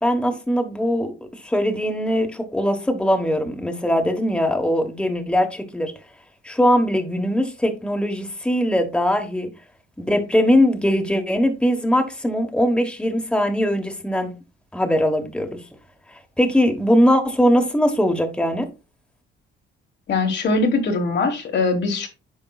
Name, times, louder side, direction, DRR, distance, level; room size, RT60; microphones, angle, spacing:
voice 1, 0.0-1.1 1.4-5.9 6.4-9.5 10.0-14.3 14.7-15.6 16.4-18.6, equal, 5° left, 1.2 m, -20 dB
voice 2, 20.1-22.1, left 3 dB, 60° left, 1.6 m, -21 dB
9.2 x 5.1 x 2.4 m
cardioid pair, 90°, 20 cm